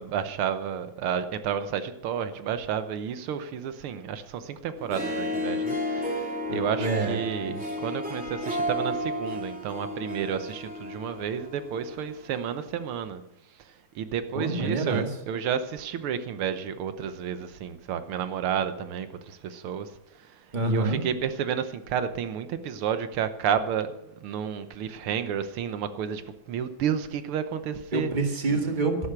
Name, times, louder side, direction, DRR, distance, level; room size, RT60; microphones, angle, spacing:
voice 1, 0.0-13.2 14.0-19.9 20.2-26.2 26.5-28.1, right 8 dB, 85° right, 11 dB, 1.8 m, -31 dB
Harp, 4.8-12.2, equal, 5° right, 2.6 m, -32 dB
voice 2, 6.5-7.8 14.3-15.2 20.5-21.0 27.9-29.1, right 2 dB, 25° right, 4 dB, 1.8 m, -27 dB
13.0 x 11.5 x 5.9 m, 0.81 s
omnidirectional pair, 2.3 m